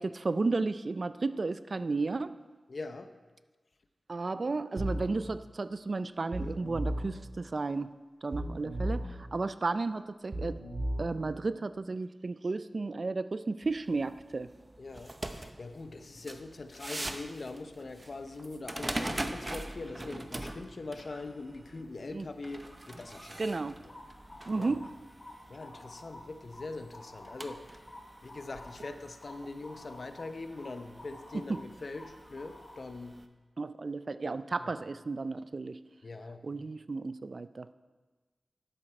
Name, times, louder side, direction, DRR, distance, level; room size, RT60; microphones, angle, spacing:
voice 1, 0.0-2.3 4.1-7.9 8.2-10.6 11.0-14.5 22.1-22.3 23.4-23.8 24.5-24.9 31.5-31.6 33.6-35.8 36.4-37.7, right 3 dB, 55° right, 13 dB, 0.4 m, -33 dB
voice 2, 2.7-3.1 14.8-23.6 24.6-24.8 25.5-27.9 28.2-33.2 34.6-34.7 36.0-36.4, left 3 dB, 60° left, 8 dB, 0.7 m, -42 dB
sound 1, 4.8-5.1 6.3-7.1 8.3-9.1 10.3-11.1, right 1 dB, 70° right, 2.8 m, -34 dB
sound 2, 13.6-33.2, right 1 dB, 25° right, 0.7 m, -44 dB
sound 3, 23.9-32.8, left 1 dB, 40° left, 1.5 m, -51 dB
11.5 x 7.9 x 4.4 m, 1.3 s
wide cardioid pair, 65°, 0 cm